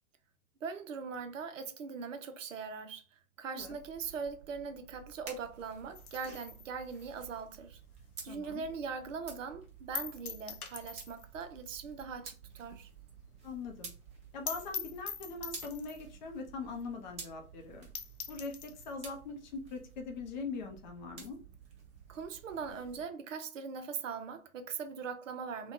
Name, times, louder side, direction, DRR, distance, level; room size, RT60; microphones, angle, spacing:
voice 1, 0.6-3.0 3.4-7.8 8.2-12.9 22.1-25.7, right 5 dB, 60° right, 0.6 m, -41 dB
sound 1, 3.6-23.0, right 5 dB, 15° right, 0.6 m, -52 dB
sound 2, 6.0-8.6 8.9-9.0 9.4-9.5 9.9-11.4 11.6-11.7 12.0-12.1 12.5-12.6 12.9-13.0 13.2-13.3 13.6-13.7 14.1-14.2 14.5-16.1 16.8-16.9 17.2-17.3 17.7-17.8 18.0-18.9, left 7 dB, 85° left, 0.6 m, -43 dB
voice 2, 8.3-8.6 13.4-13.9 14.3-17.9 18.3-21.4, left 4 dB, 30° left, 0.5 m, -42 dB
3.4 x 2.2 x 2.6 m
figure-of-eight pair, 105°, 44 cm